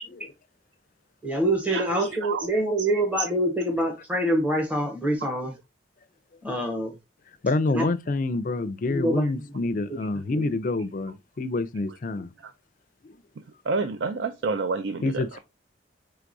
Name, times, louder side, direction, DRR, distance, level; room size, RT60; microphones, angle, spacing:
voice 1, 1.2-5.5 6.4-6.9 7.7-7.9 8.6-9.2 9.9-10.0 10.3-10.5, right 1 dB, 10° right, 0.7 m, -26 dB
voice 2, 7.4-12.3 15.0-15.4, left 2 dB, 45° left, 0.4 m, -27 dB
voice 3, 13.7-15.4, right 4 dB, 75° right, 0.4 m, -28 dB
4.6 x 3.3 x 2.6 m
head